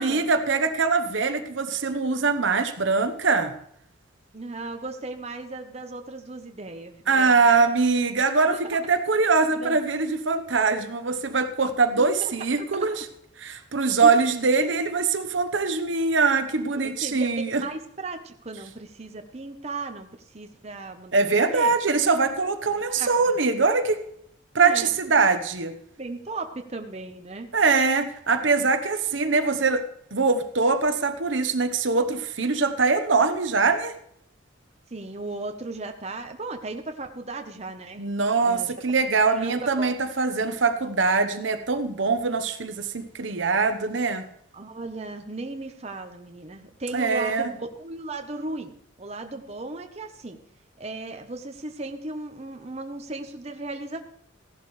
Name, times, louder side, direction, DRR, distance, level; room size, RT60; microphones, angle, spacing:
voice 1, 0.0-3.5 7.1-13.0 13.4-17.6 21.1-24.0 24.5-25.7 27.5-29.8 30.1-33.9 38.0-44.2 46.9-47.5, right 4 dB, 75° right, 9 dB, 1.0 m, -23 dB
voice 2, 4.3-7.7 9.5-9.8 12.0-12.9 13.8-14.1 17.0-21.3 21.5-21.7 22.7-23.1 24.6-24.9 26.0-27.5 28.3-28.4 34.9-38.0 38.4-38.7 39.3-39.9 44.5-50.4 50.8-54.0, right 2 dB, 35° right, 5 dB, 0.9 m, -36 dB
15.5 x 11.5 x 3.2 m, 0.69 s
head